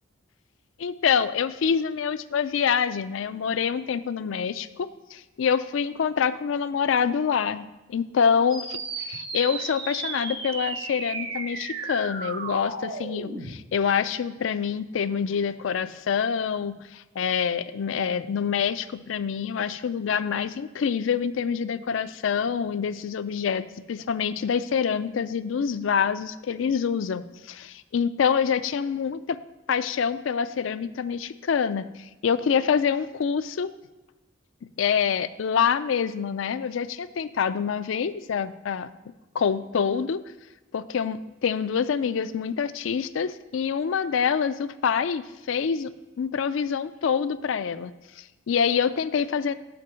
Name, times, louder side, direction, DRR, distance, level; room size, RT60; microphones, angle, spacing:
voice 1, 0.8-29.4 29.7-33.7 34.8-38.9 39.3-40.2 40.7-45.9 46.2-49.5, left 7 dB, 75° left, 13 dB, 0.4 m, -26 dB
sound 1, 8.5-13.5, right 3 dB, 60° right, 1.3 m, -34 dB
7.8 x 5.3 x 5.7 m, 1.1 s
head